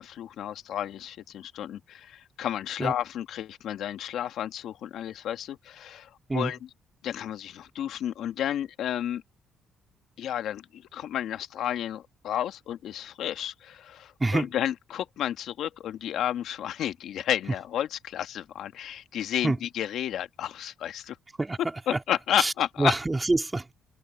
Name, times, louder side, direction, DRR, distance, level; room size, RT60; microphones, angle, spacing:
voice 1, 0.0-6.6 7.0-9.2 10.2-21.2 21.9-22.9, left 11 dB, 75° left, 1.8 m, -32 dB
voice 2, 22.8-23.7, right 2 dB, 20° right, 3.4 m, -25 dB
cardioid pair, 90°, 0 cm